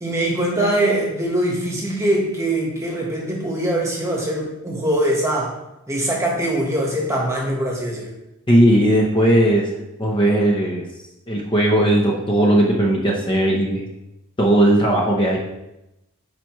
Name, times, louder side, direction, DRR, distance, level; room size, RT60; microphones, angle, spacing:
voice 1, 0.0-5.6 5.9-8.1, right 1 dB, 15° right, -2 dB, 1.4 m, -22 dB
voice 2, 8.5-9.7 10.0-10.8 11.3-13.9 14.4-15.4, right 1 dB, 20° left, -2 dB, 0.8 m, -17 dB
9.2 x 4.5 x 3.1 m, 0.91 s
head